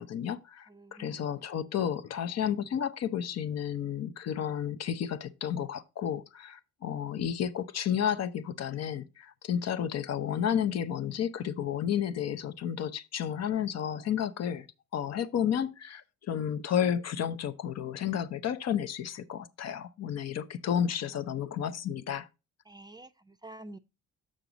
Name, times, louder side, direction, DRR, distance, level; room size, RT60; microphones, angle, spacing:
voice 1, 0.0-14.7 14.9-22.3, left 9 dB, 60° left, 0.7 m, -32 dB
voice 2, 0.7-1.2 22.7-23.8, right 1 dB, 15° right, 0.5 m, -48 dB
6.6 x 6.1 x 3.8 m
cardioid pair, 90°, 30 cm